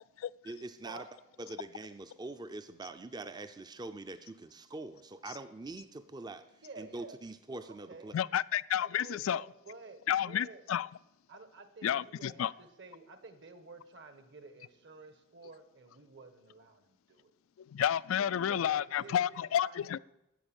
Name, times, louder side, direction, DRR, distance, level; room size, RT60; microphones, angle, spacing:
voice 1, 0.4-1.0 1.4-6.5 6.8-8.1, right 2 dB, 20° right, 0.5 m, -44 dB
voice 2, 6.6-7.2 7.6-8.1 8.8-10.6 11.3-17.3 18.2-19.8, right 3 dB, 60° right, 1.4 m, -51 dB
voice 3, 8.1-9.4 10.1-10.9 11.8-12.5 17.6-20.0, left 10 dB, 80° left, 0.3 m, -31 dB
11.5 x 7.0 x 9.0 m
head